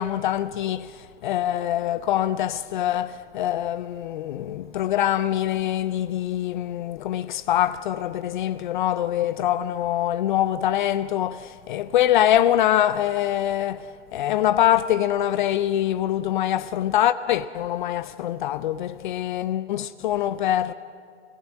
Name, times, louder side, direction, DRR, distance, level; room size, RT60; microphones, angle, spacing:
voice 1, 0.0-13.9 14.1-20.7, left 12 dB, 40° left, 0.6 m, -24 dB
29.5 x 16.0 x 9.0 m
figure-of-eight pair, 105°, 35 cm